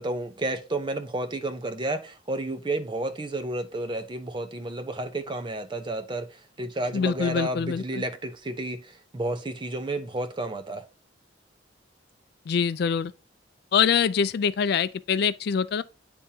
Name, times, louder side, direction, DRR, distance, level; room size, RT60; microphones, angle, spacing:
voice 1, 0.0-6.3 6.6-10.8, right 2 dB, 25° right, 0.5 m, -31 dB
voice 2, 6.9-8.0 12.5-13.1 13.7-15.8, left 7 dB, 55° left, 0.3 m, -24 dB
10.0 x 3.4 x 2.7 m
head